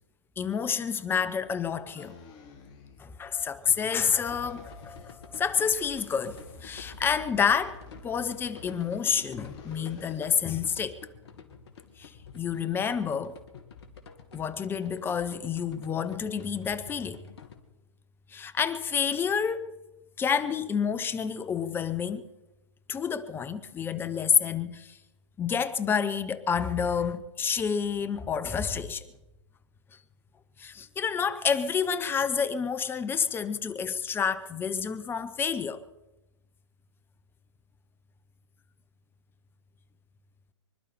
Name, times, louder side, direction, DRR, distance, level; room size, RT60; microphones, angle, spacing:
voice 1, 0.4-2.2 3.0-11.0 12.0-13.4 14.3-17.2 18.3-19.7 20.2-22.3 22.9-25.0 25.4-29.1 30.6-35.8, left 7 dB, 15° left, 0.9 m, -29 dB
sound 1, 2.0-3.3 3.6-5.2 5.7-10.9, left 3 dB, 30° left, 2.8 m, -50 dB
sound 2, 3.7-17.5, left 5 dB, 60° left, 2.5 m, -49 dB
25.5 x 12.0 x 4.5 m
hypercardioid pair, 125°, 16 cm